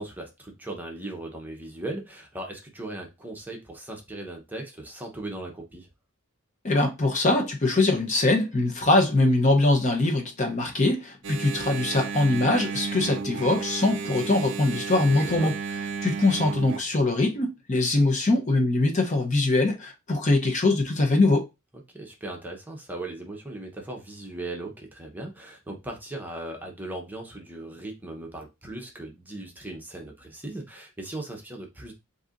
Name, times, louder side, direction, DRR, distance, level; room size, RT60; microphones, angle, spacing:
voice 1, 0.0-5.9 15.0-15.5 21.9-31.9, right 2 dB, 10° right, 0.8 m, -38 dB
voice 2, 6.6-15.5 16.0-21.5, left 2 dB, 35° left, 0.7 m, -22 dB
Engine, 11.2-16.8, right 5 dB, 60° right, 0.5 m, -33 dB
7.8 x 2.7 x 2.5 m
head